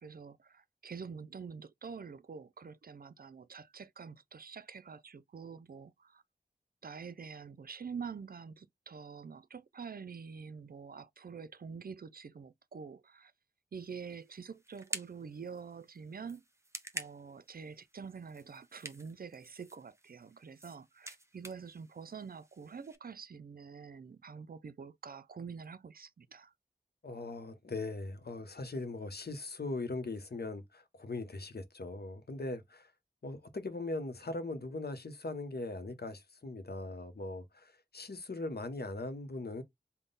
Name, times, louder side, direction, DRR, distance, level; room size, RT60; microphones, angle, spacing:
voice 1, 0.0-6.2 6.8-13.3 13.7-16.4 16.9-26.5, right 6 dB, 60° right, 0.4 m, -46 dB
sound 1, 13.7-23.0, right 1 dB, 15° right, 0.7 m, -49 dB
voice 2, 27.0-32.9 33.2-39.6, left 2 dB, 65° left, 0.9 m, -40 dB
3.6 x 2.1 x 3.9 m
wide cardioid pair, 60°, 17 cm